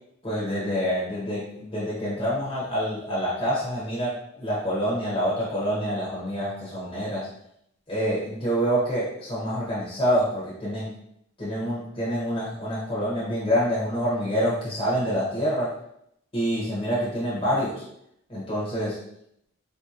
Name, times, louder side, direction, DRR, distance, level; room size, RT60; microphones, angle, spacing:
voice 1, 0.2-4.1 4.4-7.2 7.9-10.9 11.4-15.7 16.3-17.7 18.3-19.0, equal, 30° left, -8 dB, 0.9 m, -26 dB
3.7 x 2.8 x 2.4 m, 0.75 s
head